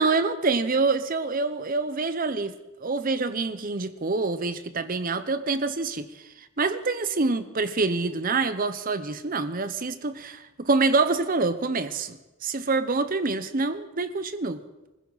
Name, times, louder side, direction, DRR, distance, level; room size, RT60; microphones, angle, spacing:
voice 1, 0.0-2.6 2.8-6.1 6.6-14.6, right 3 dB, 40° right, 0.8 m, -26 dB
21.5 x 15.5 x 4.1 m
head